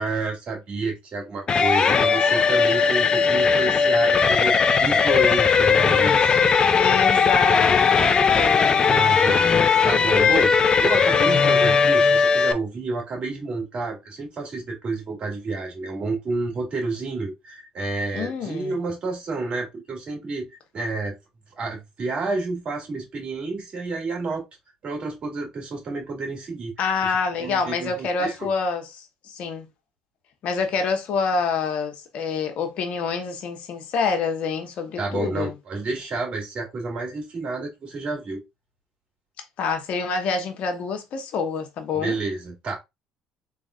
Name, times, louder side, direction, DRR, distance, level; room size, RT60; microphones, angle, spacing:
voice 1, 0.0-6.5 8.9-10.5 10.8-20.5 20.7-21.1 21.6-24.4 24.8-26.7 27.4-28.5 35.0-38.4 41.9-42.8, right 3 dB, 50° right, 2.7 m, -30 dB
sound 1, 1.5-12.5, left 5 dB, 40° left, 0.6 m, -18 dB
voice 2, 6.8-9.1 18.1-18.7 26.8-29.7 30.4-35.5 39.6-42.2, left 5 dB, 65° left, 1.1 m, -27 dB
3.7 x 3.6 x 2.4 m
supercardioid pair, 70°, 2 cm